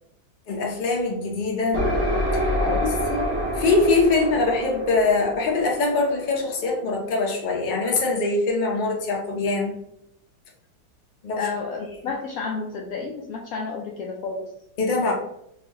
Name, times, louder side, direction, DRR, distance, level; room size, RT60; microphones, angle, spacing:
voice 1, 0.5-1.9 3.1-3.3 3.5-9.8 11.2-11.4 14.8-15.1, left 3 dB, 40° left, -1 dB, 0.7 m, -23 dB
sound 1, 1.7-7.3, equal, 10° right, 0.7 m, -27 dB
voice 2, 2.6-2.9 11.4-14.5, left 4 dB, 70° left, 0 dB, 0.9 m, -31 dB
4.0 x 2.6 x 2.9 m, 0.77 s
omnidirectional pair, 1.8 m